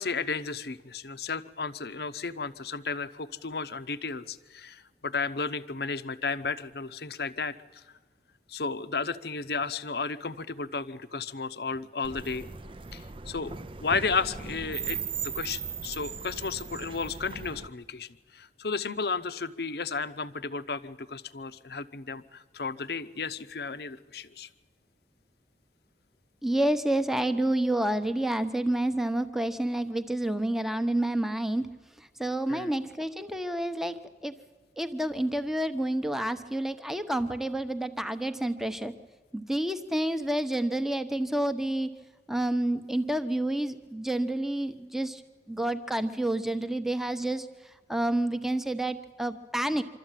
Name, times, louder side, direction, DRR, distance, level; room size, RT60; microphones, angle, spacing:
voice 1, 0.0-7.8 8.5-12.5 12.9-24.5 32.5-32.7, left 4 dB, 60° left, 12 dB, 0.8 m, -33 dB
sound 1, 12.0-17.7, right 6 dB, 30° right, 0.5 m, -38 dB
voice 2, 26.4-31.7 32.2-33.9 34.2-34.3 34.8-38.9 39.3-41.9 42.3-45.2 45.5-47.5 47.9-49.8, right 1 dB, ahead, 9 dB, 0.9 m, -29 dB
25.5 x 13.0 x 9.1 m, 1.4 s
head